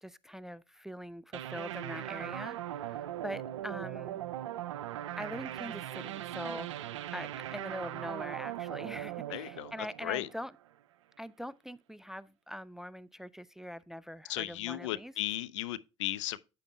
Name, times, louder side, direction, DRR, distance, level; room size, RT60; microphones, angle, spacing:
voice 1, 0.0-4.2 5.2-10.5 11.2-15.1, equal, 5° right, 0.3 m, -43 dB
sound 1, 1.3-10.7, right 12 dB, 80° right, 0.5 m, -40 dB
voice 2, 9.3-10.3 14.3-16.4, left 14 dB, 80° left, 0.4 m, -36 dB
8.5 x 8.4 x 2.2 m
hypercardioid pair, 70°, 15 cm